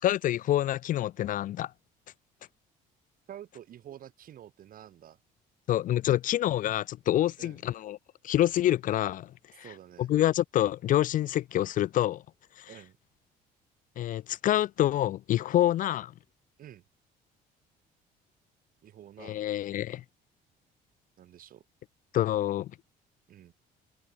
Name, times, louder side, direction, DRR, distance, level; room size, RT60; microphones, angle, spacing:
voice 1, 0.0-1.7 5.7-8.0 8.2-9.3 9.6-9.7 10.0-12.2 12.6-12.7 14.0-16.1 19.2-20.0 22.1-22.7, left 13 dB, 50° left, 0.4 m, -27 dB
voice 2, 3.3-5.2 7.4-7.6 9.6-10.1 12.7-13.0 16.6-16.8 18.8-19.4 21.2-21.6 23.3-23.5, right 11 dB, 55° right, 2.5 m, -48 dB
cardioid pair, 110°, 17 cm